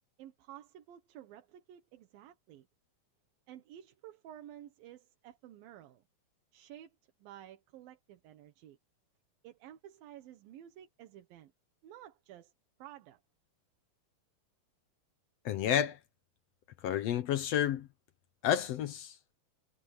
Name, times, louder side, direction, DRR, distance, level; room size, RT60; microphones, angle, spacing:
voice 1, 0.2-2.7 3.5-6.0 6.5-8.8 9.4-11.5 11.8-12.5 12.8-13.2, right 11 dB, 85° right, 3.1 m, -52 dB
voice 2, 15.4-16.0 16.8-17.9 18.4-19.1, left 10 dB, 70° left, 1.5 m, -30 dB
omnidirectional pair, 4.0 m